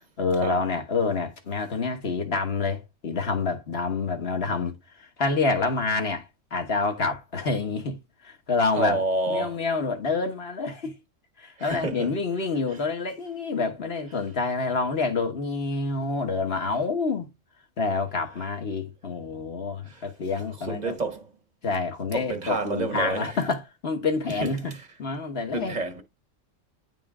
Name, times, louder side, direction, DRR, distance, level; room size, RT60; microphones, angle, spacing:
voice 1, 0.2-8.0 8.2-9.0 9.3-10.9 11.4-17.3 17.8-20.9 21.6-24.7 25.0-25.7, left 4 dB, 50° left, 1.6 m, -27 dB
voice 2, 8.8-9.6 11.6-12.1 12.7-12.8 19.9-21.3 22.1-23.4 24.3-24.9 25.5-26.0, right 2 dB, 35° right, 1.1 m, -30 dB
9.8 x 3.8 x 3.7 m
omnidirectional pair, 1.3 m